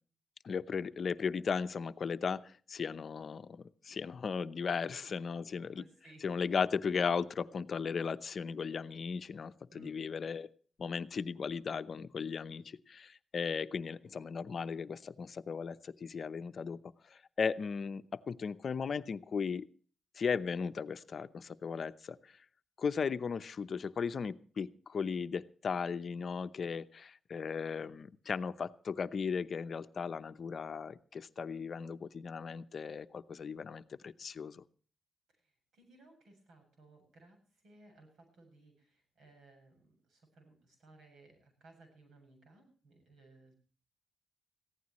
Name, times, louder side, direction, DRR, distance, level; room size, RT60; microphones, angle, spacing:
voice 1, 0.4-5.8 6.2-10.5 10.8-19.7 20.2-22.4 22.8-34.6, left 6 dB, 55° left, 12 dB, 0.8 m, -36 dB
voice 2, 4.7-5.2 5.8-6.4 9.7-10.0 35.3-43.6, right 2 dB, 85° right, 5 dB, 7.6 m, -60 dB
21.5 x 15.5 x 3.1 m, 0.42 s
cardioid pair, 110°, 0 cm